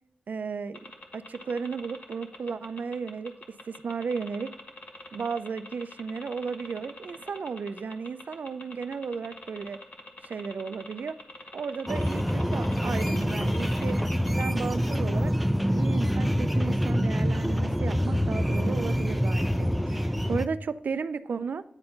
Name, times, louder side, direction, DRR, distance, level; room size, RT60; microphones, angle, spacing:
voice 1, 0.3-0.8 1.1-4.5 5.1-9.8 10.2-11.2 11.5-14.0 14.4-15.3 15.8-21.6, right 5 dB, 75° right, 13 dB, 0.3 m, -34 dB
sound 1, 0.7-14.5, left 2 dB, 60° left, 1.3 m, -45 dB
sound 2, 11.9-20.5, equal, ahead, 0.4 m, -26 dB
9.5 x 4.4 x 5.6 m, 0.77 s
wide cardioid pair, 105°, 3 cm